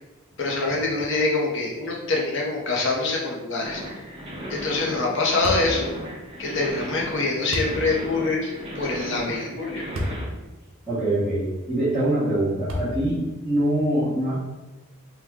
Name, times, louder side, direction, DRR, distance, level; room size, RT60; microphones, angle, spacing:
voice 1, 0.4-3.8 4.5-5.9 6.4-9.9, left 3 dB, 55° left, -1 dB, 0.6 m, -25 dB
sound 1, 3.6-10.2, equal, 25° right, 0.6 m, -36 dB
sound 2, 5.4-5.8 7.5-7.8 9.9-10.2 10.8-10.9 12.7-13.2, equal, 65° right, 0.5 m, -29 dB
voice 2, 10.9-14.3, right 1 dB, ahead, -15 dB, 1.0 m, -24 dB
3.1 x 2.1 x 3.5 m, 1.1 s
head